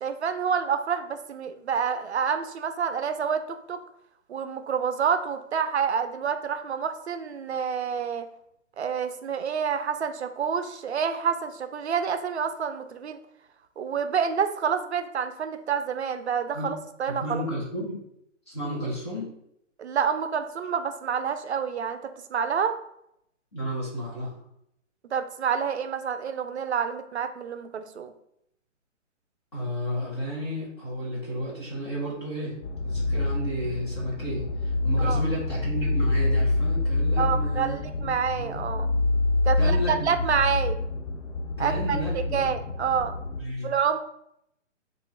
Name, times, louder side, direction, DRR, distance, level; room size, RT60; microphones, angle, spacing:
voice 1, 0.0-3.8 4.3-8.3 8.8-13.2 13.8-17.4 19.8-22.0 22.3-22.8 25.1-28.1 35.0-35.2 37.2-38.9 39.4-40.8 41.6-43.1 43.6-44.0, right 7 dB, 60° right, 9 dB, 0.5 m, -28 dB
voice 2, 17.2-18.0 18.5-19.3 23.5-24.3 29.5-32.6 32.8-38.6 39.6-40.3 41.6-42.5 43.4-43.7, equal, 20° left, -6 dB, 0.9 m, -32 dB
sound 1, 32.6-43.4, left 2 dB, 65° left, 0.7 m, -27 dB
4.3 x 2.5 x 3.3 m, 0.76 s
hypercardioid pair, 175°, 38 cm